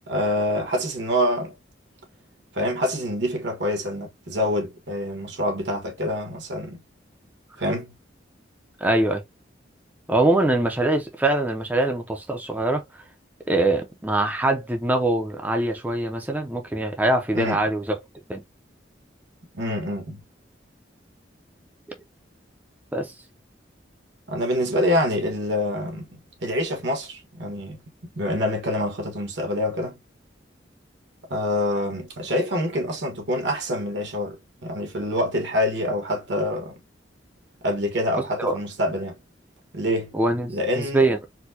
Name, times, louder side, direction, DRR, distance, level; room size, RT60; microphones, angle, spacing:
voice 1, 0.1-1.5 2.5-6.8 7.6-7.9 17.3-17.6 19.5-20.2 24.3-26.1 26.4-27.8 28.1-29.9 31.3-36.8 37.6-39.2 39.7-40.1 40.5-41.1, left 1 dB, 75° right, 1.3 m, -26 dB
voice 2, 8.8-9.2 10.1-13.0 13.5-18.0 18.3-18.4 22.9-23.1 38.4-38.5 40.1-41.3, right 2 dB, 10° right, 0.5 m, -23 dB
4.3 x 2.2 x 2.7 m
head